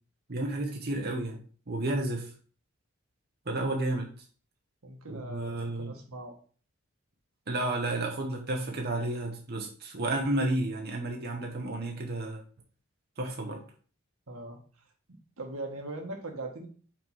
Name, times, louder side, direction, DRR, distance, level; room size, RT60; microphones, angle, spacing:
voice 1, 0.3-1.4 1.7-2.3 3.5-4.1 5.1-5.9 7.5-12.4 13.2-13.6, right 2 dB, 50° right, 1 dB, 1.0 m, -31 dB
voice 2, 4.8-6.4 14.3-14.6 15.1-16.7, right 2 dB, 85° right, 3 dB, 1.4 m, -40 dB
5.7 x 3.3 x 5.4 m, 0.41 s
head